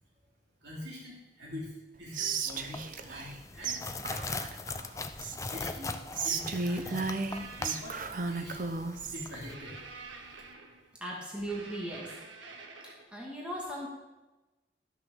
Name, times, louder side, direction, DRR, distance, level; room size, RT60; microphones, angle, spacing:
voice 1, 0.6-4.3 5.4-7.1 7.6-8.6 9.1-9.8, left 1 dB, 65° right, -5 dB, 3.1 m, -44 dB
Whispering, 2.1-3.4 3.6-3.8 4.0-5.6 6.1-9.3, right 4 dB, 45° right, 0.7 m, -34 dB
sound 1, 2.5-9.5, left 3 dB, 15° left, 0.5 m, -41 dB
sound 2, 7.3-7.9 9.5-11.0 11.5-13.0, right 4 dB, 85° right, 1.5 m, -48 dB
voice 2, 11.0-12.1 13.1-13.9, right 1 dB, 5° right, -4 dB, 2.0 m, -37 dB
13.0 x 6.2 x 6.4 m, 1.1 s
head